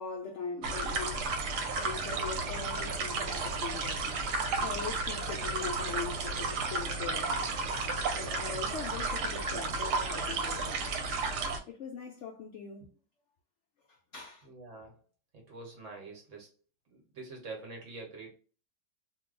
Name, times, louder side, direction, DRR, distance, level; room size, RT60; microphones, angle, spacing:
voice 1, 0.0-1.3 1.8-7.5 8.1-11.0 11.7-12.9 13.9-14.5, left 5 dB, 75° left, 0.6 m, -41 dB
sound 1, 0.6-11.6, right 3 dB, 80° right, 1.2 m, -33 dB
voice 2, 14.5-14.9 15.3-16.5 16.9-18.4, right 3 dB, 55° right, 1.2 m, -45 dB
2.6 x 2.2 x 3.7 m
omnidirectional pair, 1.7 m